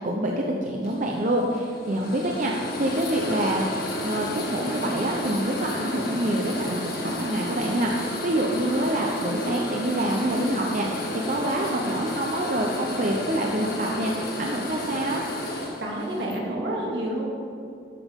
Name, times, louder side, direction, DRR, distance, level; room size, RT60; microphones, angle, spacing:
voice 1, 0.0-3.6 4.0-15.2, right 1 dB, 45° right, 0 dB, 0.9 m, -26 dB
sound 1, 0.8-16.4, left 1 dB, 60° left, 1.9 m, -32 dB
voice 2, 15.8-17.3, right 1 dB, 75° right, -3 dB, 2.5 m, -29 dB
13.0 x 10.0 x 3.7 m, 2.5 s
head